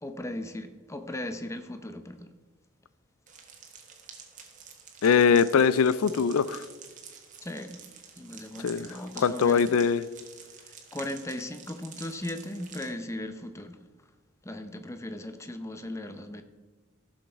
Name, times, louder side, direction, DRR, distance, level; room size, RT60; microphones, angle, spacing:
voice 1, 0.0-2.3 7.4-7.8 8.2-9.8 10.7-13.8 14.4-16.4, left 1 dB, 15° left, 8 dB, 0.7 m, -37 dB
sound 1, 3.3-12.9, right 6 dB, 35° right, 1.5 m, -48 dB
voice 2, 5.0-6.6 8.6-8.9 9.2-10.0, left 6 dB, 80° left, 17 dB, 0.4 m, -22 dB
15.0 x 6.5 x 4.5 m, 1.3 s
head